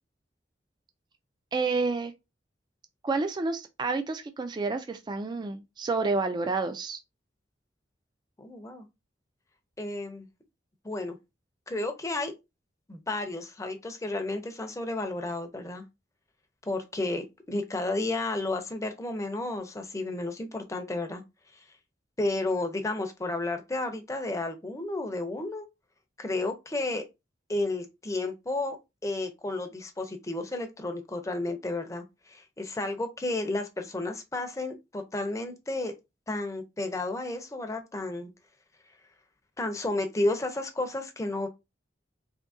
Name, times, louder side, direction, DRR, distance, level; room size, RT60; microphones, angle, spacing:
voice 1, 1.5-2.1 3.0-7.0, right 3 dB, 25° right, 0.3 m, -29 dB
voice 2, 8.4-8.9 9.8-10.3 10.8-11.2 11.7-12.3 12.9-15.8 16.7-21.2 22.2-25.6 26.2-27.0 27.5-28.8 29.0-35.9 36.3-38.3 39.6-41.5, left 2 dB, 15° left, 0.6 m, -32 dB
3.6 x 2.7 x 2.6 m
head